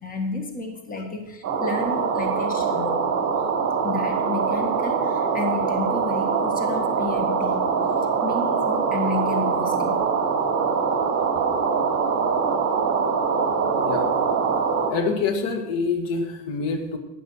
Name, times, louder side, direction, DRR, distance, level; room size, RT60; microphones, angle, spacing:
voice 1, 0.0-3.0 3.8-7.7 8.2-10.0, left 3 dB, 20° left, 4 dB, 1.7 m, -31 dB
sound 1, 1.4-14.9, right 5 dB, 35° right, 3.0 m, -23 dB
voice 2, 14.9-17.0, left 4 dB, 65° left, 5 dB, 2.2 m, -26 dB
12.0 x 10.0 x 6.4 m, 0.97 s
cardioid pair, 140°, 45 cm